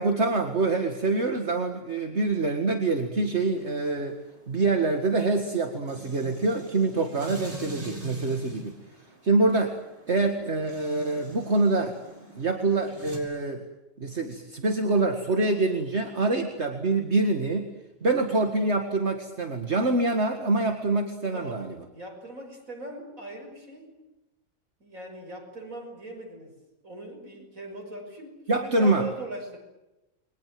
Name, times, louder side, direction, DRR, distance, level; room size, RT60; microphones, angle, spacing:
voice 1, 0.0-4.2 4.5-8.7 9.2-9.7 10.1-12.0 12.3-13.6 14.0-17.7 18.0-21.8 28.5-29.1, right 3 dB, 55° right, 4 dB, 2.2 m, -25 dB
sound 1, 3.4-13.2, right 1 dB, 40° right, 6.1 m, -44 dB
voice 2, 21.3-21.7 21.9-24.0 24.8-26.5 26.8-29.6, right 2 dB, 85° right, 2 dB, 6.6 m, -40 dB
28.5 x 23.0 x 7.7 m, 0.97 s
omnidirectional pair, 1.4 m